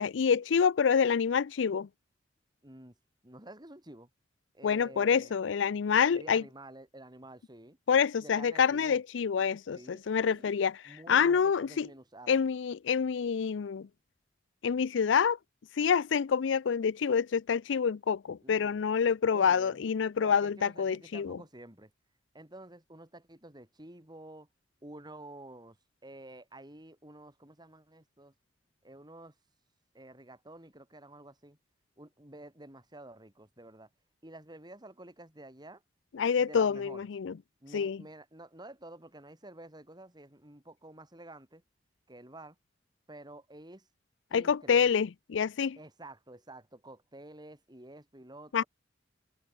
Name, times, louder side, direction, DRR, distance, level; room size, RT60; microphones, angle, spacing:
voice 1, 0.0-1.9 4.6-6.4 7.9-10.8 11.1-11.9 12.3-13.9 14.6-15.4 15.8-21.4 36.1-37.3 37.7-38.0 44.3-45.8 48.5-48.6, left 6 dB, 80° left, 0.4 m, -27 dB
voice 2, 2.6-2.9 3.2-4.1 4.5-5.3 6.1-7.8 8.2-9.0 9.7-10.5 10.9-12.4 18.4-18.8 19.3-19.8 20.2-21.9 22.3-24.5 24.8-25.8 26.0-28.3 28.8-29.3 29.9-31.6 32.0-33.9 34.2-35.8 36.4-37.1 37.6-41.6 42.1-42.6 43.1-43.9 44.3-45.0 45.8-48.7, right 1 dB, 25° right, 5.4 m, -50 dB
head